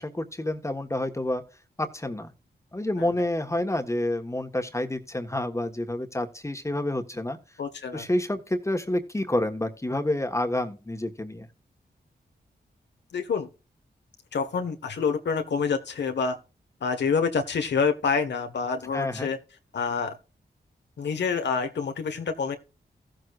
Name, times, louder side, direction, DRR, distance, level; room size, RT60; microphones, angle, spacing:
voice 1, 0.0-1.4 1.8-2.3 2.7-7.4 7.9-11.5 18.9-19.3, left 1 dB, 15° left, 1.4 m, -28 dB
voice 2, 7.6-8.0 13.1-13.5 14.3-16.4 16.8-19.4 19.7-20.2 21.0-22.6, left 5 dB, 90° left, 1.5 m, -27 dB
15.5 x 7.8 x 2.5 m
wide cardioid pair, 80°, 18 cm